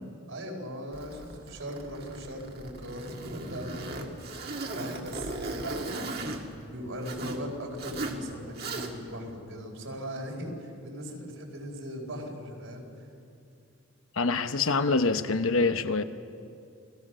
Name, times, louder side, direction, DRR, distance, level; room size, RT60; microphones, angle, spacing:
voice 1, 0.3-4.1 4.7-13.1, equal, 75° right, 4.6 m, -39 dB
Zipper (clothing), 0.9-7.4 7.8-8.2 8.5-9.2, right 2 dB, 45° right, 1.9 m, -37 dB
voice 2, 14.2-16.0, left 3 dB, 75° left, 1.0 m, -25 dB
28.5 x 19.5 x 6.3 m
head